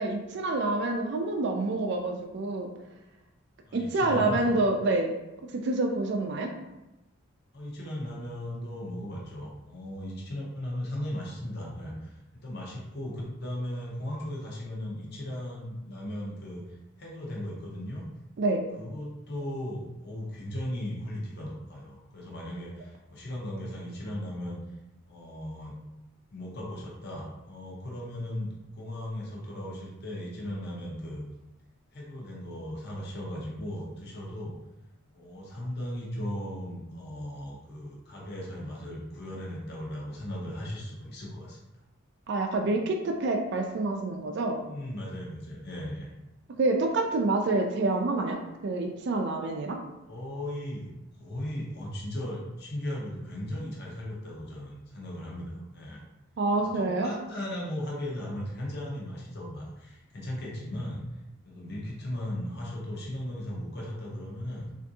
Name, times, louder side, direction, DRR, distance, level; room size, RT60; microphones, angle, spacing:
voice 1, 0.0-2.7 3.7-5.1 5.5-6.5 18.4-18.6 42.3-44.6 46.6-49.8 56.4-57.1, right 2 dB, 55° right, 3 dB, 0.4 m, -27 dB
voice 2, 3.6-4.5 7.5-18.0 18.8-24.6 25.1-25.7 26.3-31.2 31.9-34.5 35.1-41.6 44.6-46.1 50.1-50.9 51.2-56.0 56.6-61.0 61.4-64.6, left 1 dB, 55° left, -4 dB, 0.8 m, -37 dB
3.5 x 2.5 x 2.7 m, 0.97 s
head